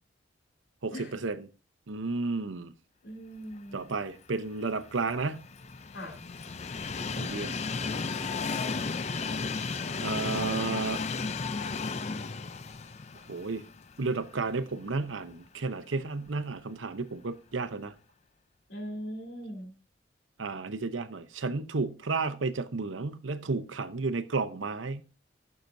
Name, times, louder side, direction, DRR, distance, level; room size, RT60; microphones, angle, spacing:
voice 1, 0.8-1.5 1.9-2.7 3.7-5.4 7.2-7.6 10.0-11.0 13.3-13.7 14.0-17.9 20.4-25.0, right 3 dB, 90° right, 0.8 m, -32 dB
voice 2, 3.0-3.8 5.9-6.2 18.7-19.7, equal, 75° left, 2.9 m, -40 dB
Train, 4.5-14.7 15.1-15.2 16.3-16.4, left 4 dB, 35° left, 0.4 m, -34 dB
15.0 x 6.7 x 2.7 m
head